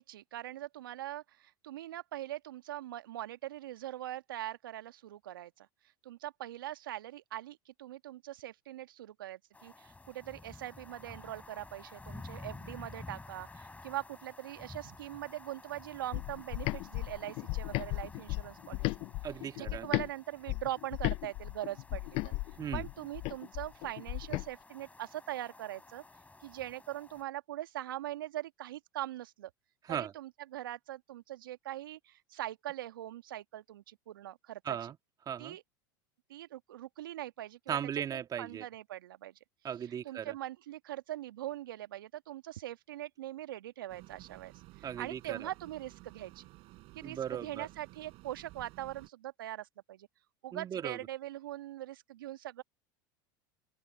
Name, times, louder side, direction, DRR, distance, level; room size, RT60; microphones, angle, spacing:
voice 1, 0.0-5.7 6.0-18.9 19.5-22.3 22.7-26.0 26.4-29.5 29.9-34.8 35.4-35.6 36.3-37.8 38.4-39.3 40.0-44.5 44.8-46.4 46.9-50.1 50.4-52.6, right 14 dB, 80° right, 1.5 m, -42 dB
sound 1, 9.5-27.2, left 3 dB, 10° left, 7.7 m, -52 dB
sound 2, 16.1-20.1 20.5-24.5, left 24 dB, 55° left, 0.6 m, -36 dB
voice 2, 19.2-19.9 22.6-22.9 29.9-30.1 34.6-35.0 35.3-35.6 37.7-38.6 39.6-40.3 44.8-45.5 47.0-47.7 50.5-51.0, right 9 dB, 35° right, 2.1 m, -37 dB
sound 3, 43.9-49.1, right 21 dB, 55° right, 6.4 m, -54 dB
open air
hypercardioid pair, 85°, 11 cm